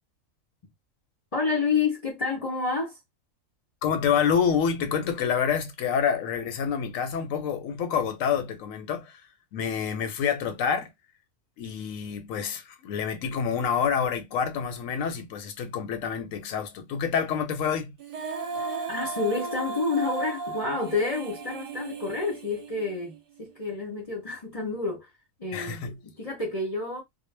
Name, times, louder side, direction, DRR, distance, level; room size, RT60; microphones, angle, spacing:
voice 1, 1.3-2.9 18.9-23.1 23.4-25.1 25.4-27.0, left 4 dB, 35° left, 0.6 m, -29 dB
voice 2, 3.8-9.2 9.5-10.9 11.6-17.9 25.5-26.0, left 7 dB, 80° left, 1.0 m, -27 dB
Female singing, 18.0-23.2, right 3 dB, 55° right, 0.7 m, -35 dB
2.1 x 2.1 x 3.2 m
omnidirectional pair, 1.4 m